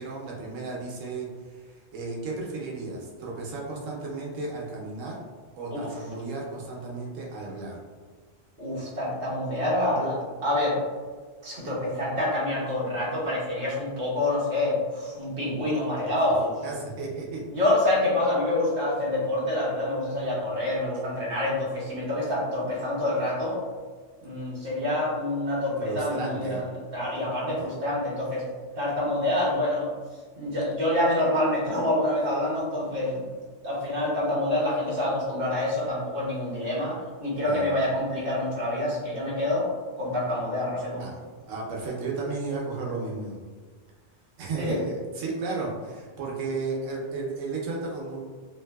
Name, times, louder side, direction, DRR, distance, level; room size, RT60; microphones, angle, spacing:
voice 1, 0.0-5.2 5.6-7.8 16.6-17.4 25.8-26.7 27.5-27.7 37.4-37.7 41.0-41.2 41.5-43.4 44.4-48.2, right 3 dB, 85° right, -2 dB, 1.1 m, -34 dB
voice 2, 8.6-10.8 11.4-16.6 17.5-23.6 24.2-28.4 28.8-29.9 30.4-33.2 33.6-39.7 40.0-41.0 44.6-44.8, left 1 dB, 50° right, -7 dB, 1.1 m, -27 dB
2.9 x 2.6 x 2.2 m, 1.5 s
omnidirectional pair, 1.3 m